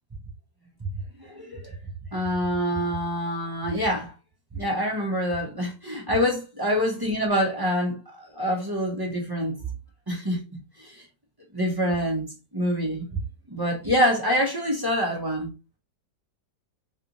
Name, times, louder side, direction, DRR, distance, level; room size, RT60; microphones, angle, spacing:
voice 1, 1.2-1.7 2.1-4.1 4.5-9.6 10.1-10.4 10.8-11.0 11.5-12.2 12.5-13.0 13.5-15.5, equal, 25° right, 0.5 m, -26 dB
3.3 x 2.7 x 2.9 m
omnidirectional pair, 1.9 m